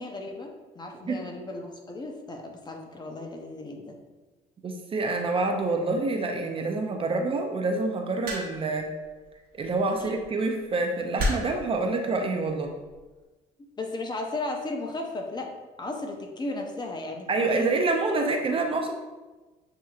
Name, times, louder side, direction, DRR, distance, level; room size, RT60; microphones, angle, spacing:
voice 1, 0.0-4.0 10.0-10.1 13.8-15.5 15.8-17.7 18.2-18.3, left 2 dB, 25° left, 2 dB, 0.7 m, -35 dB
voice 2, 4.6-8.9 9.5-12.7 17.3-18.9, right 3 dB, 30° right, 3 dB, 0.5 m, -27 dB
sound 1, 8.3-8.8 10.0-10.2 11.2-11.7 12.6-12.9, equal, 65° right, 1.3 m, -30 dB
7.6 x 2.8 x 2.4 m, 1.2 s
cardioid pair, 110°, 17 cm